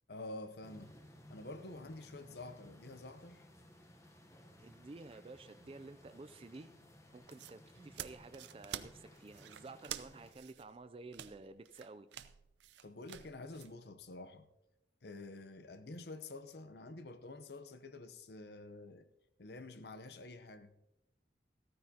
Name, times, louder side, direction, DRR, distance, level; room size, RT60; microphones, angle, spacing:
voice 1, 0.1-1.0 1.3-3.5 12.8-14.5 15.0-19.1 19.4-20.7, left 2 dB, 70° left, 0.8 m, -49 dB
sound 1, 0.6-10.3, equal, 15° left, 0.9 m, -59 dB
voice 2, 4.6-6.8 7.1-12.1, right 3 dB, 30° right, 0.4 m, -52 dB
sound 2, 7.3-13.7, right 10 dB, 90° right, 0.5 m, -49 dB
15.0 x 13.5 x 2.8 m
head